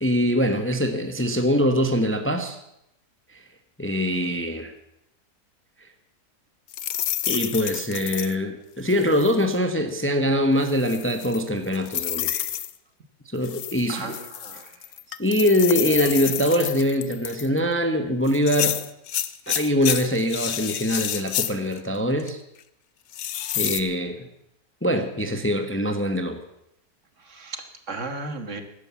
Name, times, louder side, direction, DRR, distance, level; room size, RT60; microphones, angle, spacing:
voice 1, 0.0-2.6 3.3-3.4 3.8-4.7 7.3-12.5 13.3-14.2 15.2-18.8 19.5-22.4 23.5-24.3 24.8-26.4, equal, 10° left, 7 dB, 1.0 m, -23 dB
sound 1, 6.7-8.3 8.9-9.4 10.6-12.7 13.4-17.6 18.3-21.8 22.2-22.3 23.1-23.8, left 11 dB, 70° left, 1.2 m, -29 dB
voice 2, 13.9-14.7 27.3-28.6, right 3 dB, 50° right, 7 dB, 1.8 m, -35 dB
15.5 x 11.5 x 7.1 m, 0.81 s
omnidirectional pair, 1.6 m